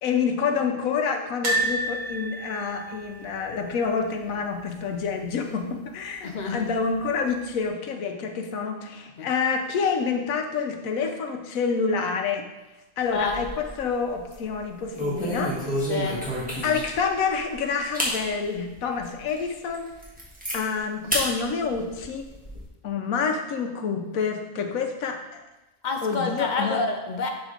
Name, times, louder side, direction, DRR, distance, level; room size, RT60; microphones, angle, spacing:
voice 1, 0.0-12.4 13.0-15.5 16.6-19.9 20.5-22.2 22.8-25.4 26.0-26.8, left 5 dB, 80° left, 4 dB, 1.2 m, -27 dB
sound 1, 1.4-4.5 4.8-5.0 5.2-5.3 6.6-7.1 7.6-7.7, right 2 dB, 80° right, 1.7 m, -30 dB
voice 2, 6.2-6.6 9.2-9.3 13.1-13.4 15.9-16.2 25.8-27.3, left 3 dB, 60° left, 4 dB, 0.4 m, -28 dB
Opening and closing car keys, 13.1-13.8 14.2-14.4 14.9-17.0 17.5-17.6 17.9-18.2 18.7-18.8 19.3-19.4 19.7-20.6 21.1-21.3 21.7-22.6, equal, 5° right, 1.2 m, -29 dB
6.2 x 3.7 x 4.9 m, 1.0 s
omnidirectional pair, 1.4 m